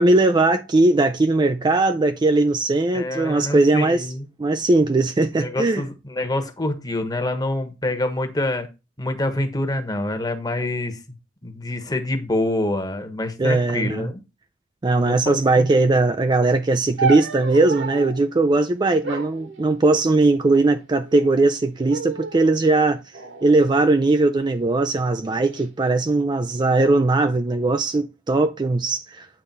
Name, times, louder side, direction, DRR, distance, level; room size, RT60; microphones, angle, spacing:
voice 1, 0.0-4.1 4.4-5.8 13.4-14.1 14.8-23.0 23.4-29.3, right 2 dB, 25° right, 0.3 m, -19 dB
voice 2, 2.9-4.3 5.4-8.7 9.0-11.0 11.4-14.2 15.0-15.7, left 1 dB, 20° left, 1.2 m, -26 dB
sound 1, 17.0-18.2 19.0-20.3 21.0-21.5 21.9-22.4 23.1-24.4 25.2-25.7, right 4 dB, 70° right, 1.6 m, -31 dB
8.7 x 3.4 x 5.3 m
head